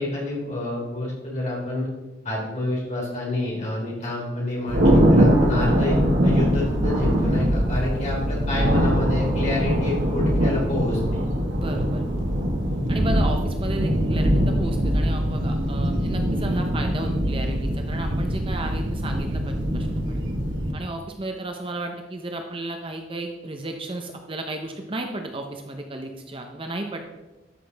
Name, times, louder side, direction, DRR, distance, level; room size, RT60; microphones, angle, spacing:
voice 1, 0.0-1.9 2.2-11.2 12.8-12.9, left 2 dB, 40° left, -4 dB, 3.3 m, -28 dB
Thunder, 4.7-20.7, equal, 80° right, 1.5 m, -22 dB
voice 2, 11.5-12.1 12.9-20.2 20.7-27.1, right 2 dB, 30° right, 4 dB, 0.7 m, -34 dB
12.5 x 6.1 x 3.4 m, 1.1 s
head